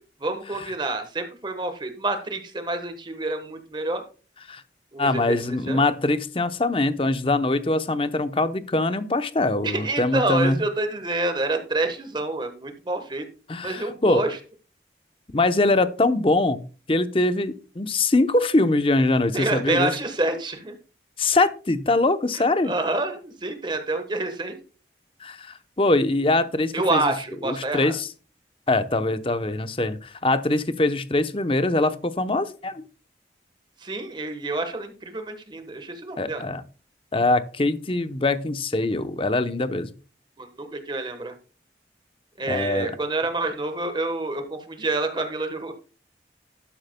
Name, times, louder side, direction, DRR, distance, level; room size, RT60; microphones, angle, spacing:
voice 1, 0.2-4.0 4.9-5.4 5.7-5.8 9.6-13.3 13.6-14.4 19.3-20.7 22.3-24.6 26.7-27.9 33.8-36.4 40.4-41.3 42.4-45.7, right 2 dB, 25° right, 7 dB, 1.2 m, -28 dB
voice 2, 5.0-10.6 13.5-14.2 15.3-16.6 16.9-19.9 21.2-22.7 25.2-27.1 27.4-28.1 28.7-32.8 36.2-36.6 37.1-39.9 42.5-42.9, left 2 dB, 30° left, 11 dB, 0.8 m, -23 dB
12.0 x 10.5 x 2.2 m, 0.36 s
head